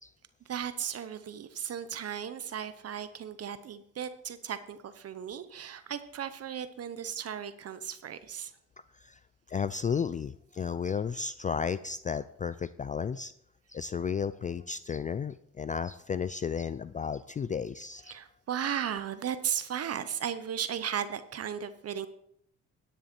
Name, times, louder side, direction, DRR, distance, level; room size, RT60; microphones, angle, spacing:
voice 1, 0.5-8.5 18.1-22.1, right 8 dB, 55° right, 12 dB, 0.8 m, -36 dB
voice 2, 9.5-13.3 13.7-18.2, left 6 dB, 25° left, 15 dB, 0.3 m, -33 dB
10.5 x 10.0 x 4.4 m, 0.72 s
cardioid pair, 90°, 30 cm